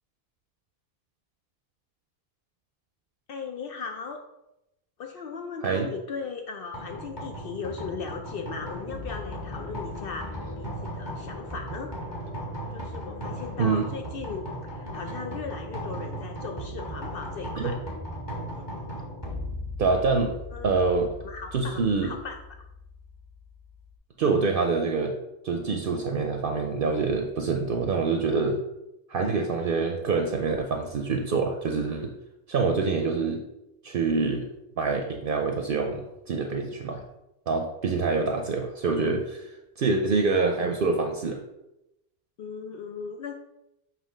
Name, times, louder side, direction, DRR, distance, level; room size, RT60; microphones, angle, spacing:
voice 1, 3.3-4.2 5.0-11.9 12.7-17.8 18.5-18.7 20.5-20.8 21.2-22.4 42.4-43.3, left 5 dB, 65° left, 4 dB, 0.7 m, -37 dB
sound 1, 6.7-23.9, equal, 25° left, 1.6 m, -37 dB
sound 2, 8.4-13.8, left 5 dB, 85° left, 1.1 m, -45 dB
voice 2, 19.8-20.4 20.6-21.1 21.5-22.1 24.2-25.1 25.4-28.6 29.1-32.1 32.5-33.4 33.8-34.5 34.8-37.0 37.5-39.5 39.8-41.4, right 4 dB, 60° right, 3 dB, 0.7 m, -26 dB
7.6 x 2.8 x 4.9 m, 0.91 s
omnidirectional pair, 1.1 m